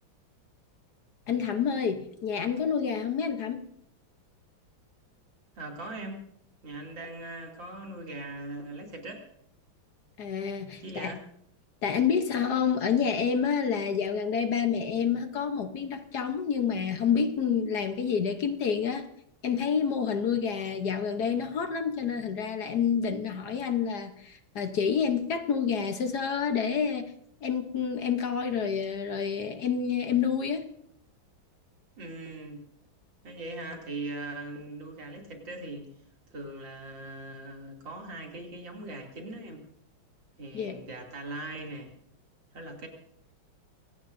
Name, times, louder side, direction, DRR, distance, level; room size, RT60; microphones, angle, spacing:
voice 1, 1.3-3.6 10.2-11.1 11.8-19.0 19.4-27.1 27.4-30.6 40.5-40.8, left 7 dB, 60° left, 7 dB, 1.4 m, -28 dB
voice 2, 5.5-6.2 6.6-9.3 10.8-11.2 32.0-32.6 33.2-36.0 36.3-39.6 40.4-41.9 42.5-42.9, right 2 dB, 65° right, 1 dB, 3.4 m, -40 dB
24.5 x 18.0 x 2.6 m, 0.68 s
omnidirectional pair, 2.2 m